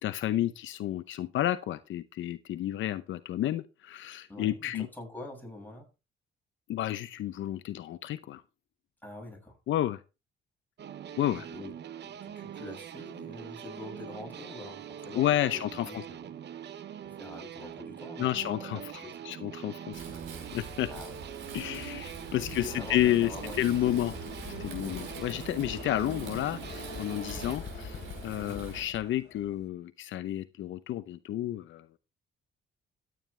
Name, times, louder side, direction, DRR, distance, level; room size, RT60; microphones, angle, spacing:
voice 1, 0.0-4.9 6.7-8.4 9.7-10.0 11.2-11.5 15.1-16.0 18.2-18.8 19.2-20.0 20.5-20.9 21.5-24.1 24.6-32.0, left 13 dB, 75° left, 13 dB, 0.7 m, -31 dB
voice 2, 4.3-5.9 9.0-9.6 11.3-11.7 12.0-15.2 15.7-16.3 17.0-19.3 20.9-21.2 22.6-24.1 24.8-25.0 28.4-28.7, left 2 dB, 10° left, 0 dB, 7.1 m, -45 dB
sound 1, 10.8-27.6, right 9 dB, 60° right, 0.9 m, -43 dB
Wind, 19.9-28.8, right 4 dB, 85° right, 5.2 m, -44 dB
sound 2, 21.9-29.7, left 8 dB, 60° left, 1.2 m, -45 dB
14.0 x 9.4 x 3.3 m, 0.29 s
cardioid pair, 90°, 20 cm